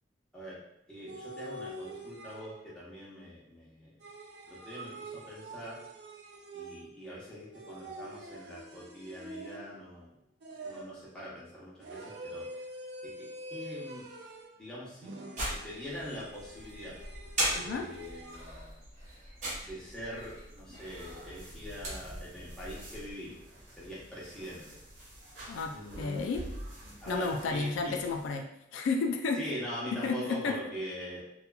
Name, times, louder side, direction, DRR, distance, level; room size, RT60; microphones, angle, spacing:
voice 1, 0.9-3.9 4.5-5.8 6.5-10.1 10.6-12.4 13.0-13.1 13.5-14.0 14.6-15.1 15.5-16.9 17.5-18.7 19.6-23.4 23.8-24.7 25.7-26.3 27.0-28.0 29.4-31.2, equal, 5° left, -9 dB, 0.8 m, -43 dB
sound 1, 1.1-2.8 4.0-7.1 7.5-9.9 10.4-11.1 11.8-14.6 15.0-18.5, right 1 dB, 60° right, 0.4 m, -46 dB
sound 2, 15.4-23.1, right 1 dB, 40° right, 0.7 m, -39 dB
voice 2, 17.6-17.9 25.5-26.4 27.1-28.5 28.7-29.4 30.0-30.6, left 4 dB, 85° left, 5 dB, 0.3 m, -32 dB
sound 3, 20.8-28.3, right 1 dB, 85° right, 1.0 m, -49 dB
2.8 x 2.4 x 2.2 m, 0.79 s
head